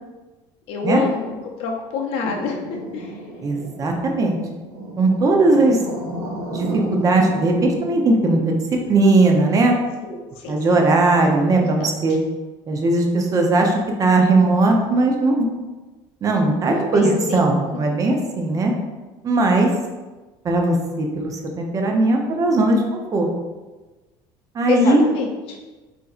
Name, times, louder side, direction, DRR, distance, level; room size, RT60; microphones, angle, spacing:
voice 1, 0.7-2.6 2.9-3.2 10.0-10.9 11.6-12.2 16.6-17.5 24.7-25.6, left 4 dB, 60° left, 1 dB, 0.5 m, -27 dB
sound 1, 2.2-8.0, right 1 dB, 70° right, 0.6 m, -33 dB
voice 2, 3.4-4.4 5.0-5.8 6.5-8.6 8.9-9.7 10.5-12.2 12.7-15.5 16.2-18.7 19.2-19.7 20.4-21.3 21.6-23.3 24.6-25.0, right 2 dB, 30° right, 2 dB, 0.6 m, -18 dB
3.9 x 2.5 x 2.4 m, 1.2 s
supercardioid pair, 115°, 11 cm